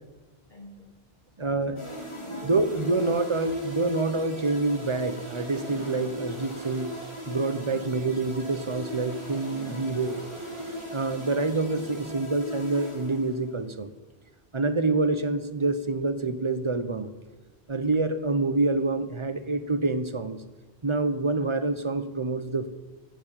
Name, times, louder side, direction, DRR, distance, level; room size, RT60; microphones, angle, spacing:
voice 1, 0.5-1.0 1.5-3.0, equal, 45° left, 2 dB, 2.6 m, -46 dB
voice 2, 1.4-1.8 2.4-6.9 7.3-10.2 10.9-13.9 14.5-17.1 17.7-20.4 20.8-22.7, right 3 dB, 30° right, 11 dB, 0.9 m, -27 dB
sound 1, 1.8-13.6, equal, 25° left, 2.6 m, -39 dB
Rain, 3.0-12.1, right 3 dB, 75° right, 1.9 m, -46 dB
15.0 x 7.3 x 10.0 m, 1.2 s
omnidirectional pair, 1.1 m